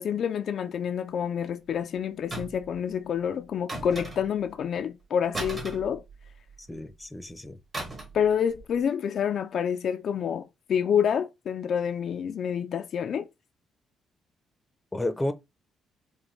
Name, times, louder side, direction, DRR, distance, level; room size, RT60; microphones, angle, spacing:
voice 1, 0.0-6.0 8.1-13.3, left 8 dB, 60° left, 0.4 m, -28 dB
sound 1, 2.3-2.7 3.7-4.5 5.3-6.5 7.7-8.2 8.5-8.7, right 2 dB, 30° right, 1.8 m, -37 dB
voice 2, 6.6-7.6 14.9-15.3, left 1 dB, 10° left, 0.7 m, -31 dB
4.9 x 2.2 x 3.1 m
cardioid pair, 90°, 0 cm